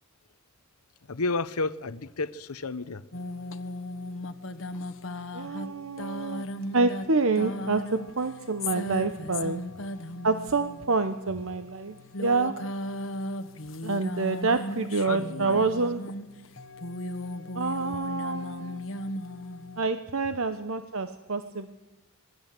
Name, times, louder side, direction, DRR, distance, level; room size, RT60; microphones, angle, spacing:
voice 1, 1.1-3.1 15.0-15.7, left 3 dB, 85° left, 0.9 m, -31 dB
sound 1, 3.1-19.8, left 1 dB, 60° left, 1.4 m, -37 dB
voice 2, 5.3-6.5 6.7-9.7 10.2-12.7 13.8-16.1 17.5-18.8 19.8-21.7, right 3 dB, 70° right, 1.0 m, -27 dB
26.5 x 20.5 x 7.8 m
head